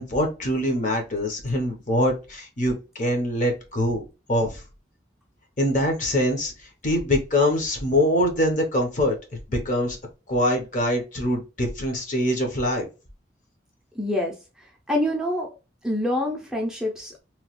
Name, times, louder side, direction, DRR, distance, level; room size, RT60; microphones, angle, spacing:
voice 1, 0.0-4.0 4.3-4.6 5.6-6.5 6.8-9.2 9.5-10.0 10.3-12.9, left 1 dB, 40° left, 2 dB, 0.8 m, -23 dB
voice 2, 13.9-15.6 15.8-17.2, left 1 dB, 5° right, 0 dB, 0.5 m, -27 dB
3.0 x 2.3 x 2.9 m, 0.30 s
head